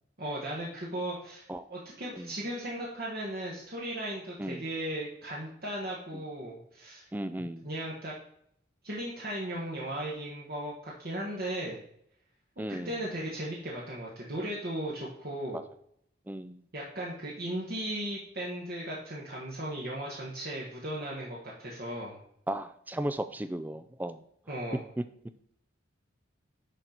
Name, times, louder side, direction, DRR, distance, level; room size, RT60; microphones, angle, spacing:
voice 1, 0.2-7.1 7.6-8.1 8.8-11.8 12.7-15.6 16.7-22.2 24.5-24.8, right 1 dB, 50° right, -4 dB, 1.4 m, -36 dB
voice 2, 7.1-7.7 12.6-12.9 16.3-16.6 22.5-24.2, right 1 dB, 10° right, 10 dB, 0.3 m, -35 dB
11.0 x 4.0 x 4.4 m, 0.71 s
head